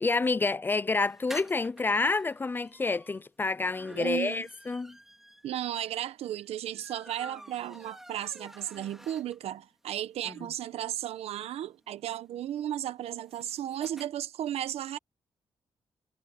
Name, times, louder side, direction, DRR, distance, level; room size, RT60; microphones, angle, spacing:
voice 1, 0.0-5.0 10.3-10.4, left 3 dB, 20° left, 0.3 m, -28 dB
sound 1, 1.0-9.6 10.0-10.1 10.3-10.4 10.7-14.1, equal, 5° right, 3.1 m, -50 dB
voice 2, 3.9-4.4 5.4-15.0, right 11 dB, 90° right, 1.1 m, -35 dB
cardioid pair, 135°, 10 cm